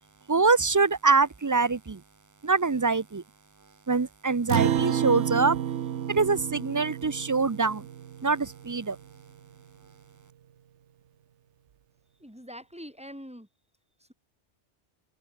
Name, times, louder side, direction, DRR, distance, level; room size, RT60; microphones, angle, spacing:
voice 1, 0.3-2.0 2.4-3.2 3.9-5.6 6.1-7.8 8.2-9.0, right 4 dB, 30° right, 0.3 m, -24 dB
Acoustic guitar, 4.5-9.2, right 10 dB, 85° right, 1.1 m, -30 dB
voice 2, 12.2-13.5, equal, 5° right, 5.6 m, -43 dB
omnidirectional pair, 1.2 m